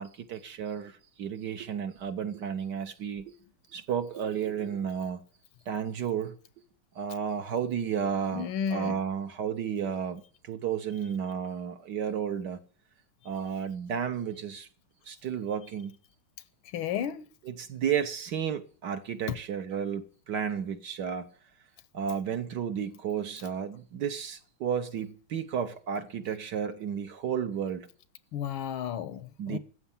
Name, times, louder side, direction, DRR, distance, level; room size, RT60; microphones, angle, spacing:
voice 1, 0.0-3.3 3.7-5.2 5.7-6.4 6.9-12.6 13.2-14.7 15.1-16.0 17.4-21.3 21.9-27.9 29.4-29.6, right 8 dB, 60° right, 1.4 m, -32 dB
voice 2, 8.3-9.0 16.7-17.3 19.3-19.4 28.3-29.6, left 8 dB, 75° left, 1.6 m, -33 dB
14.0 x 7.9 x 7.2 m
omnidirectional pair, 2.4 m